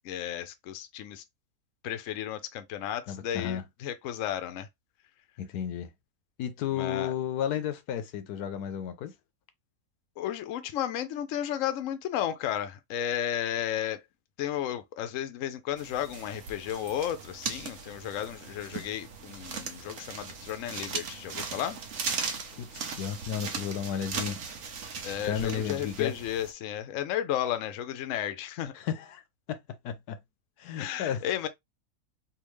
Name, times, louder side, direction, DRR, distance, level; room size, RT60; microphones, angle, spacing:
voice 1, 0.0-1.2 1.8-4.7 6.7-7.1 10.2-14.0 14.4-21.8 25.0-28.7 30.8-31.5, left 11 dB, 65° left, 0.9 m, -33 dB
voice 2, 3.1-3.6 5.4-5.9 6.4-9.1 22.6-24.4 25.2-26.1 28.7-29.2 29.5-30.2 30.6-31.2, left 9 dB, 85° left, 1.2 m, -33 dB
sound 1, 15.8-26.5, right 5 dB, 65° right, 1.1 m, -38 dB
3.5 x 2.7 x 3.1 m
omnidirectional pair, 1.6 m